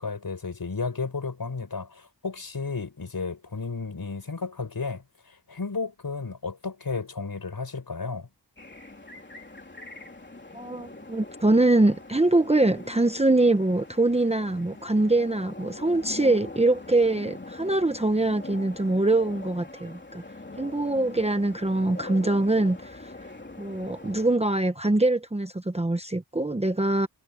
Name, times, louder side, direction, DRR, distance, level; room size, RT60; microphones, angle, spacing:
voice 1, 0.0-8.3, left 4 dB, 55° left, 6.3 m, -33 dB
sound 1, 8.6-24.4, left 2 dB, 25° left, 3.5 m, -43 dB
voice 2, 10.5-20.2 20.6-23.1 23.6-27.1, right 2 dB, 15° right, 1.0 m, -23 dB
wide cardioid pair, 110°, 43 cm